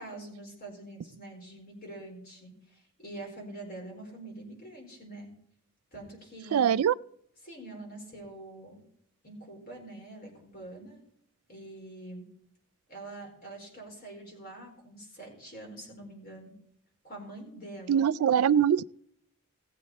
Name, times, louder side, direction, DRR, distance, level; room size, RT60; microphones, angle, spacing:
voice 1, 0.0-5.3 5.9-6.7 7.4-8.8 9.2-11.0 11.5-12.3 12.9-16.5 17.0-18.1, right 2 dB, 45° left, 4.5 m, -45 dB
voice 2, 6.5-6.9 17.9-18.8, right 8 dB, 85° right, 0.3 m, -23 dB
18.0 x 7.5 x 4.1 m
head